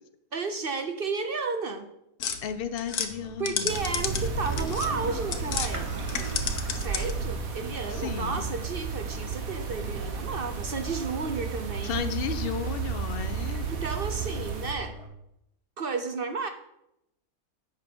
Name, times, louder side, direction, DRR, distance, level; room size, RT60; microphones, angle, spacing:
voice 1, 0.3-1.9 3.4-5.9 6.2-6.3 6.7-12.2 13.7-15.0 15.8-16.5, right 4 dB, 50° right, 7 dB, 0.7 m, -33 dB
sound 1, 2.2-5.7 6.0-7.3, left 7 dB, 85° left, 1.4 m, -32 dB
voice 2, 2.4-3.7 7.9-8.4 11.8-13.7, left 8 dB, 50° left, 10 dB, 0.7 m, -33 dB
Toilet flush, 3.1-15.1, left 1 dB, 25° right, 1.2 m, -44 dB
sound 2, 3.7-14.7, right 5 dB, 70° right, 1.5 m, -33 dB
8.7 x 5.8 x 6.1 m, 0.81 s
omnidirectional pair, 1.5 m